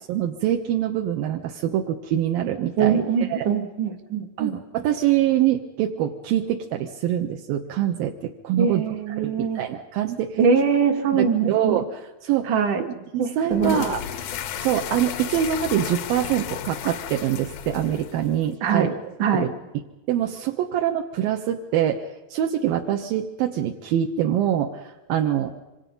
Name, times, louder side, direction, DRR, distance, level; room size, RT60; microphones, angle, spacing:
voice 1, 0.1-3.0 3.3-3.5 4.4-8.8 9.2-10.4 11.1-11.9 12.2-12.5 12.8-18.9 19.3-19.5 20.1-25.6, right 11 dB, 80° right, 3 dB, 2.8 m, -25 dB
voice 2, 2.8-4.6 8.6-9.6 10.4-11.8 12.4-12.8 13.2-13.8 18.6-18.9 19.2-19.5, right 6 dB, 60° right, 5 dB, 3.4 m, -22 dB
sound 1, 13.5-18.5, left 10 dB, 85° left, 1.5 m, -33 dB
26.5 x 25.5 x 5.4 m, 1.1 s
omnidirectional pair, 4.3 m